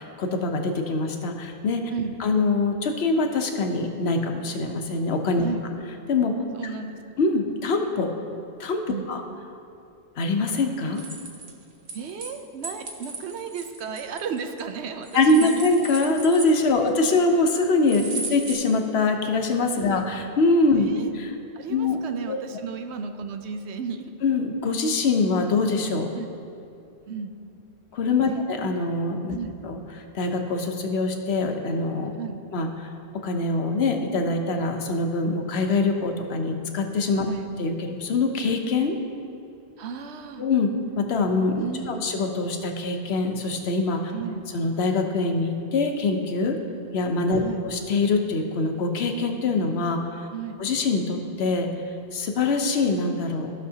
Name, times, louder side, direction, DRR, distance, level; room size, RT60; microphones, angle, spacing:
voice 1, 0.2-1.8 2.2-5.4 6.1-6.3 7.2-8.1 8.6-8.8 9.1-9.2 10.2-11.0 15.1-20.9 21.1-21.3 21.7-22.0 22.3-22.4 24.2-26.1 27.9-29.4 29.6-29.8 30.1-32.1 32.5-32.7 33.2-37.3 37.6-39.0 40.4-44.0 44.5-46.6 46.9-47.4 47.6-50.0 50.6-51.7 52.1-53.5, left 3 dB, 70° left, 4 dB, 1.0 m, -23 dB
voice 2, 6.5-7.0 8.9-9.1 11.9-15.6 16.7-16.9 18.1-18.3 19.9-20.0 20.8-21.1 21.5-24.1 26.1-26.3 27.1-27.3 28.3-28.4 29.3-29.6 32.2-32.4 37.3-37.5 39.8-40.5 41.6-42.1 44.1-44.5 47.4-47.6 50.3-50.6, right 6 dB, 80° right, 7 dB, 0.9 m, -34 dB
sound 1, 10.9-12.3 12.6-14.6 15.0-16.9 17.9-18.5, right 3 dB, 50° right, 1.0 m, -36 dB
15.0 x 6.1 x 2.8 m, 2.7 s
omnidirectional pair, 1.1 m